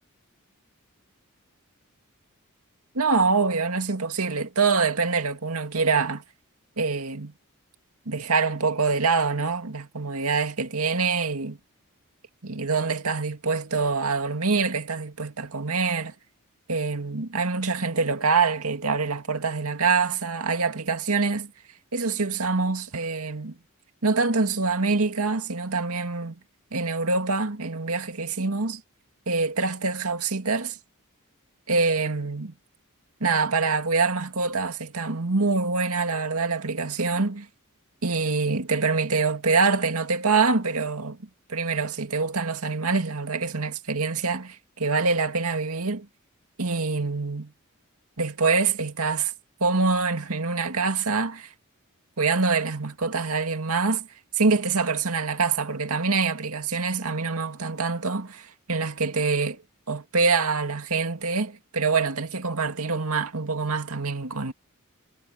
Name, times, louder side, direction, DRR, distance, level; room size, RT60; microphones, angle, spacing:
voice 1, 2.9-6.2 6.8-7.3 8.1-11.6 12.4-16.1 16.7-21.5 21.9-23.5 24.0-26.4 26.7-28.8 29.3-30.8 31.7-32.5 33.2-37.5 38.0-41.2 41.5-46.1 46.6-47.5 48.2-49.3 49.6-51.5 52.2-54.1 54.3-59.6 59.9-64.5, right 4 dB, 80° right, 2.2 m, -25 dB
head